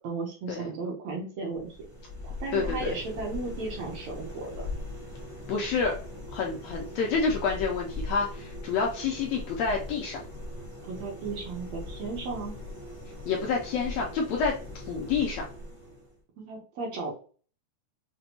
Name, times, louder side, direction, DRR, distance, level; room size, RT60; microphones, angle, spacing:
voice 1, 0.0-1.7 2.2-4.7 10.8-12.6 16.4-17.1, right 3 dB, 70° right, -1 dB, 1.9 m, -35 dB
sound 1, 1.5-16.2, left 1 dB, 40° left, 0.4 m, -40 dB
voice 2, 2.5-2.9 5.5-6.0 6.3-10.2 13.3-15.5, left 5 dB, 75° left, 0 dB, 1.6 m, -28 dB
6.0 x 2.2 x 2.8 m, 0.38 s
omnidirectional pair, 3.6 m